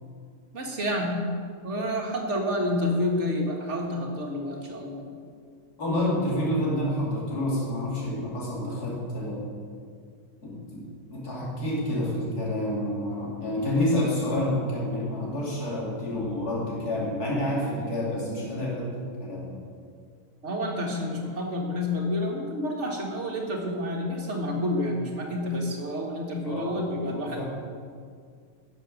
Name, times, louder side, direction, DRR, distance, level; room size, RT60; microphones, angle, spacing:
voice 1, 0.5-1.2 1.6-5.1 20.4-27.4, left 1 dB, 50° right, 0 dB, 1.9 m, -29 dB
voice 2, 5.8-9.5 10.4-18.9 19.2-19.5 26.4-27.4, left 1 dB, 80° left, -5 dB, 3.1 m, -29 dB
11.0 x 7.3 x 6.5 m, 2.1 s
omnidirectional pair, 1.6 m